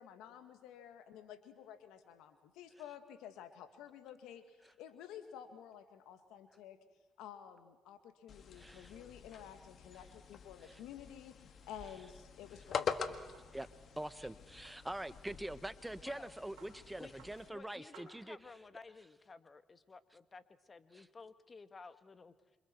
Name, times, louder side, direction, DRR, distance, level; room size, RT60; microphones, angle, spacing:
voice 1, 0.0-6.8 7.2-12.9, left 9 dB, 85° left, 8 dB, 1.8 m, -52 dB
sound 1, 8.3-17.5, left 6 dB, 60° left, 1.7 m, -45 dB
voice 2, 8.6-8.9 10.7-10.8 13.5-13.7 14.0-18.4 20.9-21.0, right 1 dB, 10° right, 13 dB, 1.2 m, -44 dB
sound 2, 11.3-18.9, right 7 dB, 85° right, 3.4 m, -66 dB
voice 3, 17.5-22.6, left 4 dB, 40° left, 11 dB, 1.6 m, -54 dB
28.5 x 26.0 x 4.6 m, 1.3 s
supercardioid pair, 55°, 0 cm